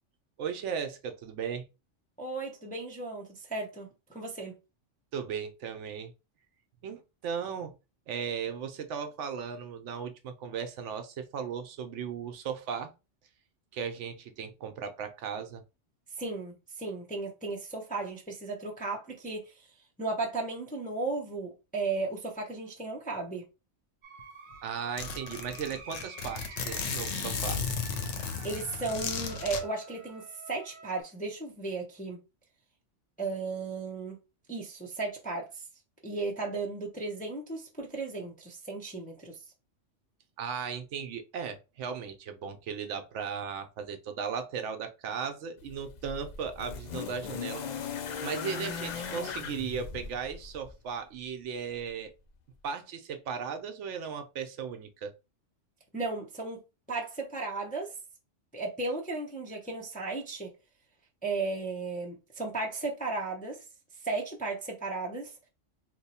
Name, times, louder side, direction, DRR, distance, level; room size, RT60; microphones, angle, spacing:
voice 1, 0.4-1.6 5.1-6.1 6.8-7.8 8.1-12.9 13.7-15.6 24.6-27.6 40.4-47.6 48.2-52.1 52.6-55.1, right 6 dB, 75° right, 0.9 m, -36 dB
voice 2, 2.2-4.5 16.2-19.7 20.0-23.4 28.4-32.2 33.2-34.2 34.5-35.6 36.0-39.4 55.9-56.6 56.9-57.9 58.5-60.5 61.2-63.6 64.0-65.3, right 3 dB, 10° left, 0.5 m, -35 dB
sound 1, 24.0-31.0, right 4 dB, 50° right, 0.7 m, -49 dB
Zipper (clothing), 24.2-24.3 24.5-24.6 25.0-29.6, left 5 dB, 90° left, 1.0 m, -34 dB
sound 2, 45.6-50.8 51.9-52.0, left 7 dB, 70° left, 0.4 m, -38 dB
3.0 x 2.1 x 4.1 m
omnidirectional pair, 1.3 m